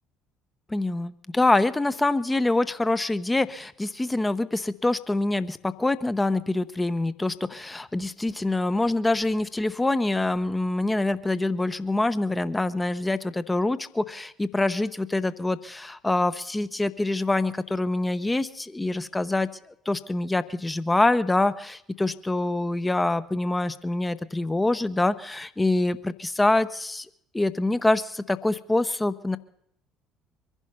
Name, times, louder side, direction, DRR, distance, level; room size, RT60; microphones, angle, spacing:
voice 1, 0.7-19.5 19.9-27.1 27.3-29.4, left 2 dB, 15° left, 13 dB, 0.9 m, -25 dB
23.5 x 11.0 x 5.5 m, 0.71 s
figure-of-eight pair, 55°, 0 cm